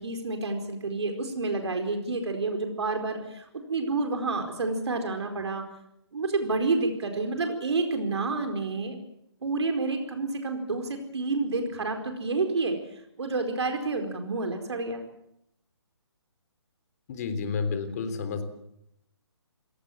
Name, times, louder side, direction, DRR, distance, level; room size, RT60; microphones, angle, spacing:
voice 1, 0.0-5.6 6.1-9.0 9.4-12.8 13.2-15.0, right 3 dB, 70° right, 5 dB, 4.6 m, -29 dB
voice 2, 17.1-18.4, left 5 dB, 35° left, 9 dB, 3.5 m, -30 dB
27.5 x 18.0 x 7.4 m, 0.77 s
hypercardioid pair, 160°, 15 cm